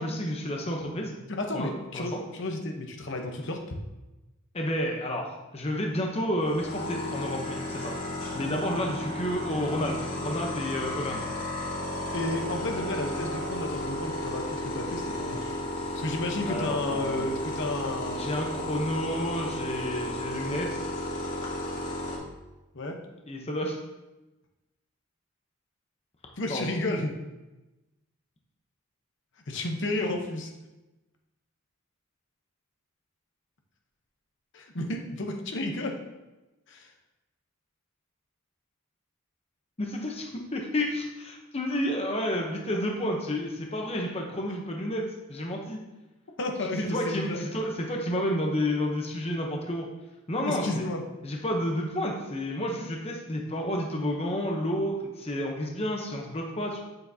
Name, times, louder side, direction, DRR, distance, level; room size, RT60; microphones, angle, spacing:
voice 1, 0.0-1.1 1.5-2.2 4.5-7.9 8.3-11.3 15.8-15.9 16.5-17.3 18.2-20.8 23.3-23.8 26.5-26.7 39.8-45.8 46.9-49.9 50.3-50.8 51.2-56.8, left 1 dB, 30° left, 1 dB, 0.8 m, -30 dB
voice 2, 1.3-3.8 12.1-15.4 15.9-18.3 22.7-23.0 26.4-27.1 29.5-30.5 34.5-36.0 36.7-36.9 46.4-47.5 50.5-51.0, left 2 dB, 60° left, 3 dB, 0.9 m, -32 dB
sound 1, 6.4-22.2, left 1 dB, 80° left, 2.1 m, -33 dB
8.3 x 6.7 x 2.8 m, 1.1 s
head